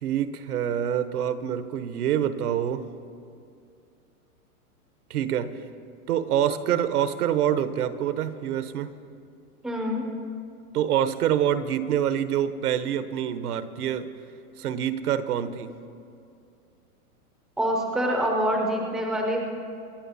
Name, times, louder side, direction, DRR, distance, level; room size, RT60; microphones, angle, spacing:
voice 1, 0.0-2.9 5.1-5.6 6.1-9.0 10.7-14.1 14.6-15.8, right 10 dB, 75° right, 12 dB, 1.1 m, -26 dB
voice 2, 9.6-10.1 17.6-19.4, equal, ahead, 0 dB, 0.5 m, -25 dB
26.5 x 10.0 x 4.2 m, 2.4 s
supercardioid pair, 165°, 45 cm